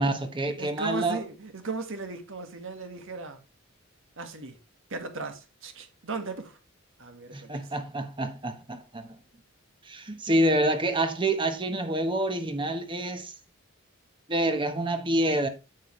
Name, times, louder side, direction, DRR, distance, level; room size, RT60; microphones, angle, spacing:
voice 1, 0.0-1.2 7.3-9.2 9.8-13.3 14.3-15.5, right 1 dB, 25° right, 1.2 m, -27 dB
voice 2, 0.6-3.4 4.2-4.6 4.9-6.6 7.0-7.6, right 3 dB, 65° right, 1.8 m, -36 dB
9.3 x 7.6 x 3.2 m
head